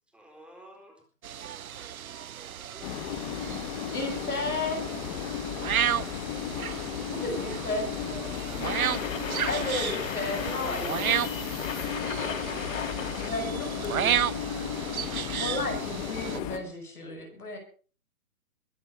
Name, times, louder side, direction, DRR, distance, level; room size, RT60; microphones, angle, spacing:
voice 1, 0.1-1.0 2.5-3.8 4.6-5.1 10.2-11.3, right 1 dB, ahead, 2 dB, 4.3 m, -49 dB
sound 1, 1.2-16.4, right 9 dB, 75° right, 0.7 m, -33 dB
sound 2, 2.8-16.6, left 9 dB, 25° left, 1.5 m, -35 dB
voice 2, 3.9-4.9 7.1-7.9 9.5-11.0 13.2-14.2 15.3-17.6, left 2 dB, 90° left, 4 dB, 7.9 m, -33 dB
voice 3, 7.7-9.9 11.8-12.2 12.5-13.4 13.9-15.7, right 5 dB, 45° right, 2 dB, 7.9 m, -49 dB
sound 3, 8.6-13.5 13.8-13.9, left 7 dB, 60° left, 2.0 m, -37 dB
21.5 x 10.0 x 5.2 m, 0.40 s
hypercardioid pair, 140°, 43 cm